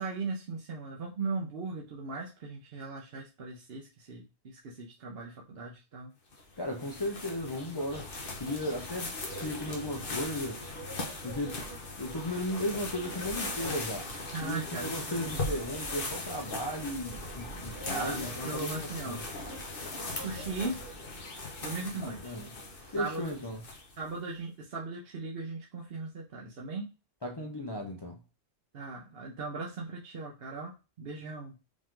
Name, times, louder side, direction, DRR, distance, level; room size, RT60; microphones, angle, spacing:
voice 1, 0.0-6.1 14.3-15.3 17.9-19.2 20.1-20.8 21.6-22.3 23.0-23.3 24.0-26.9 28.7-31.5, right 3 dB, 60° right, 0.9 m, -38 dB
sound 1, 6.3-24.1, left 2 dB, 55° left, 1.2 m, -39 dB
voice 2, 6.6-8.1 8.4-10.7 11.2-11.7 12.0-14.1 14.4-19.2 22.0-22.5 22.8-23.6 27.2-28.2, left 1 dB, 35° left, 0.4 m, -35 dB
5.1 x 2.6 x 3.6 m
omnidirectional pair, 1.2 m